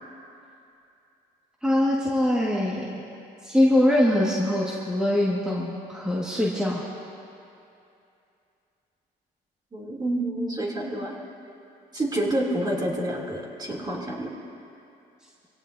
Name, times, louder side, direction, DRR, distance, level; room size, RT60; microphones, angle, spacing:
voice 1, 1.6-2.8 3.4-6.8, left 1 dB, 5° right, -5 dB, 1.8 m, -23 dB
voice 2, 9.7-11.1 11.9-14.3, right 1 dB, 25° right, -2 dB, 3.1 m, -28 dB
24.5 x 17.0 x 2.8 m, 2.7 s
cardioid pair, 110°, 17 cm